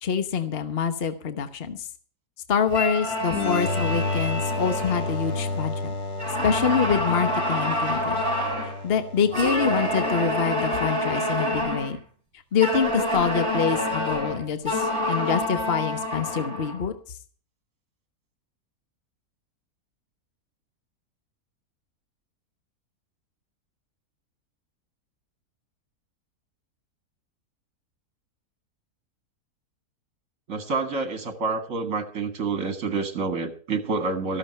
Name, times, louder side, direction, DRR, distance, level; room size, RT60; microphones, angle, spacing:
voice 1, 0.0-1.9 2.5-5.9 6.4-8.2 8.8-12.0 12.5-16.9, left 6 dB, 40° left, 9 dB, 1.3 m, -25 dB
sound 1, 2.7-5.8 6.2-8.8 9.3-12.0 12.6-16.8, left 1 dB, 20° right, 6.4 m, -27 dB
sound 2, 3.3-10.8, left 3 dB, 85° left, 1.9 m, -31 dB
voice 2, 30.5-34.4, right 4 dB, 55° right, 7 dB, 2.2 m, -28 dB
13.5 x 13.0 x 4.4 m, 0.41 s
omnidirectional pair, 1.6 m